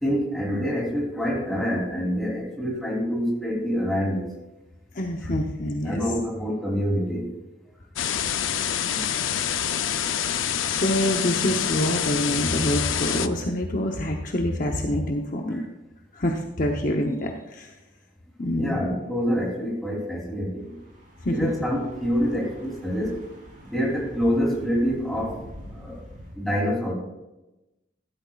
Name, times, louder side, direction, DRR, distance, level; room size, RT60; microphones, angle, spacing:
voice 1, 0.0-4.3 5.2-5.3 5.8-7.3 8.6-8.8 15.5-15.6 18.5-20.8 21.3-23.2 23.6-25.4 25.7-26.0 26.3-26.9, equal, ahead, -4 dB, 3.3 m, -26 dB
voice 2, 4.9-6.0 8.8-9.0 10.6-15.6 16.1-17.7 18.4-18.9 21.2-21.5, left 1 dB, 40° left, 2 dB, 0.9 m, -26 dB
sound 1, 8.0-13.3, left 9 dB, 80° left, 0.6 m, -26 dB
Thunder / Bicycle, 20.6-26.3, equal, 40° right, 4.5 m, -44 dB
14.5 x 12.5 x 2.4 m, 0.98 s
head